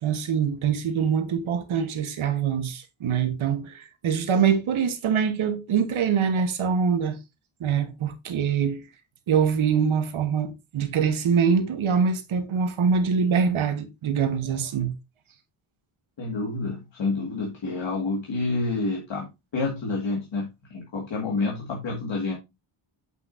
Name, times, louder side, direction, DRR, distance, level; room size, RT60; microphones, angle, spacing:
voice 1, 0.0-7.2 7.6-8.8 9.3-14.9, right 6 dB, 70° right, 1.3 m, -24 dB
voice 2, 16.2-22.4, left 3 dB, 60° left, 2.0 m, -28 dB
7.7 x 6.1 x 2.6 m
wide cardioid pair, 155°, 50 cm